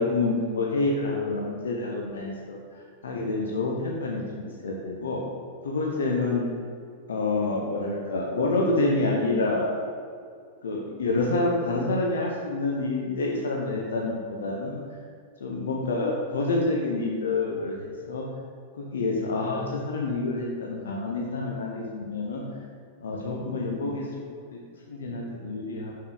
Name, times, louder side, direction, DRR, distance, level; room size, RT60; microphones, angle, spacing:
voice 1, 0.0-5.2 5.6-6.4 7.1-9.7 10.6-14.8 15.4-18.3 18.8-22.4 23.0-24.1 24.5-24.6 24.9-25.9, left 2 dB, 70° left, -1 dB, 0.9 m, -28 dB
7.2 x 6.6 x 4.1 m, 2.3 s
figure-of-eight pair, 95°, 0 cm